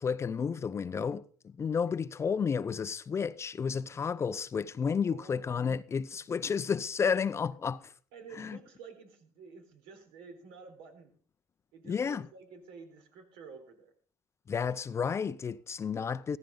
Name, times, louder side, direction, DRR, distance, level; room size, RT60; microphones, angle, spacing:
voice 1, 0.0-7.9 8.4-8.6 11.9-12.2 14.5-16.4, left 6 dB, 30° left, 0.6 m, -31 dB
voice 2, 5.0-5.6 6.3-6.4 8.1-11.1 11.7-13.9, right 5 dB, 80° right, 4.0 m, -51 dB
15.0 x 14.5 x 3.8 m
cardioid pair, 105°, 9 cm